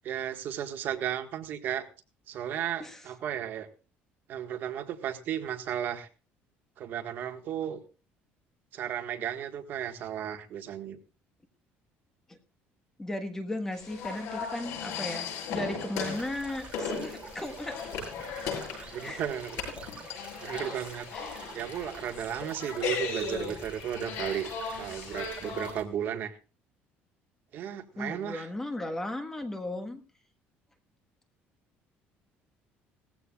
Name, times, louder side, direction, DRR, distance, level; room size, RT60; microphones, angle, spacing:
voice 1, 0.0-1.9 2.3-3.7 4.3-6.1 6.8-7.8 8.7-11.0 18.9-19.6 20.4-24.5 24.8-26.3 27.5-28.5, right 9 dB, 50° right, 7 dB, 1.6 m, -34 dB
voice 2, 13.0-18.0 19.0-19.2 20.1-20.3 21.1-21.4 28.0-30.0, left 1 dB, 10° left, 7 dB, 1.4 m, -36 dB
sound 1, 13.7-25.7, left 5 dB, 80° left, 7.2 m, -37 dB
sound 2, 16.0-25.8, right 5 dB, 25° right, 2.7 m, -47 dB
19.0 x 15.0 x 2.4 m, 0.33 s
cardioid pair, 160°, 4 cm